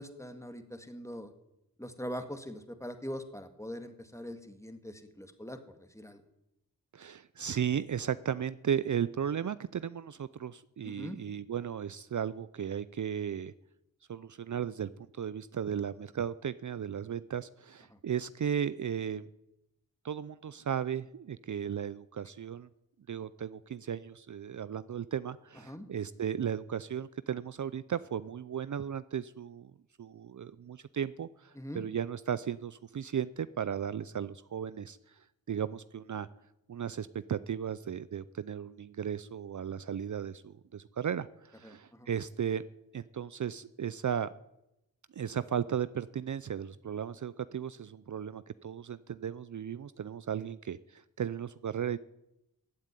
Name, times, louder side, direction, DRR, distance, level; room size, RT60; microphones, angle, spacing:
voice 1, 0.0-1.3 1.8-6.2 10.8-11.2 17.9-18.0 25.7-25.9 31.5-31.8 41.6-42.1, equal, 10° left, 8 dB, 1.9 m, -42 dB
voice 2, 6.9-13.5 14.1-19.2 20.0-22.7 23.1-29.7 30.0-36.3 36.7-42.6 42.9-44.3 45.1-52.0, right 8 dB, 55° right, 16 dB, 0.5 m, -35 dB
15.0 x 9.0 x 9.7 m, 0.88 s
wide cardioid pair, 65°, 36 cm